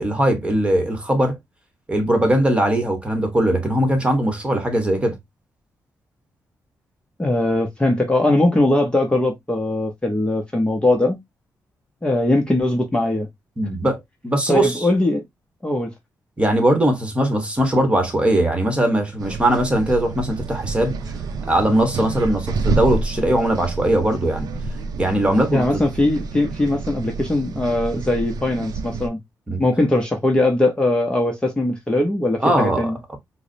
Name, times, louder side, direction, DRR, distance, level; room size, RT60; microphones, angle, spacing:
voice 1, 0.0-1.4 1.9-5.2 13.6-14.8 16.4-21.0 21.5-24.5 25.0-25.6 29.5-29.6 32.4-33.2, right 1 dB, 15° right, 1.1 m, -20 dB
voice 2, 7.2-11.2 12.0-13.3 14.5-15.2 15.6-15.9 25.5-29.2 29.6-33.0, left 1 dB, 15° left, 0.7 m, -20 dB
sound 1, 19.2-29.1, right 3 dB, 80° right, 0.5 m, -29 dB
4.7 x 2.0 x 2.6 m
cardioid pair, 115°, 6 cm